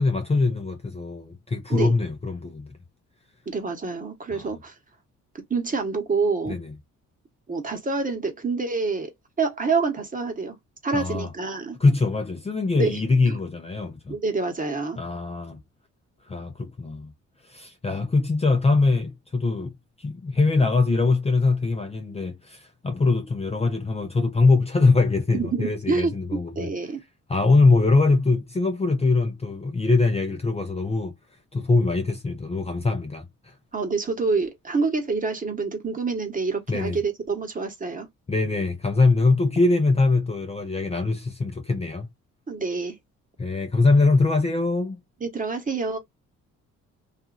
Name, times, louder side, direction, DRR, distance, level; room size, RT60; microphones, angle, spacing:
voice 1, 0.0-2.8 4.3-4.5 6.5-6.7 10.9-11.3 11.8-14.2 15.0-15.6 16.2-17.1 17.4-19.7 20.0-26.7 27.3-31.1 31.5-33.5 36.7-37.0 38.3-42.1 43.4-45.0, left 3 dB, 20° left, 0.6 m, -22 dB
voice 2, 3.5-4.7 5.5-6.6 7.5-9.1 9.4-10.5 10.8-11.8 12.8-13.3 14.1-15.0 25.3-26.1 26.5-27.0 33.7-38.1 42.5-43.0 45.2-46.0, right 4 dB, 25° right, 1.2 m, -27 dB
2.6 x 2.5 x 2.3 m
cardioid pair, 90°, 30 cm